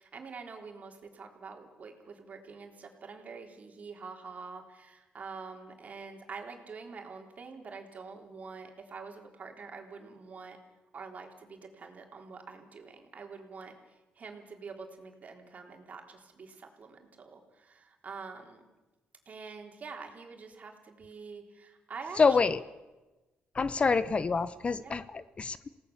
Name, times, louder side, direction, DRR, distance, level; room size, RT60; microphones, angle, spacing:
voice 1, 0.0-10.6 10.9-13.7 14.2-18.6 19.3-22.4 24.8-25.0, right 4 dB, 45° right, 3 dB, 3.7 m, -46 dB
voice 2, 22.2-22.6 23.6-25.7, left 4 dB, 35° left, 15 dB, 0.8 m, -27 dB
27.5 x 18.0 x 7.2 m, 1.1 s
cardioid pair, 110°, 4 cm